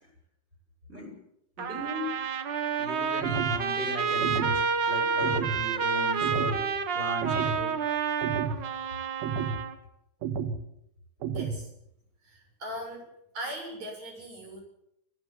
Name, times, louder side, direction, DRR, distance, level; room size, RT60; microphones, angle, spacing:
voice 1, 1.6-2.2 2.8-7.8, left 1 dB, 15° right, 2 dB, 5.7 m, -37 dB
Trumpet, 1.6-9.7, right 6 dB, 70° right, 1.0 m, -29 dB
sound 1, 3.2-3.6 4.2-4.6 5.2-5.6 6.2-6.6 7.2-7.6 8.2-8.6 9.2-9.6 10.2-10.6 11.2-11.6, right 6 dB, 85° right, 3.5 m, -31 dB
voice 2, 11.3-11.7 12.2-14.6, equal, 50° right, 2 dB, 8.2 m, -39 dB
23.5 x 15.5 x 7.3 m, 0.77 s
omnidirectional pair, 4.1 m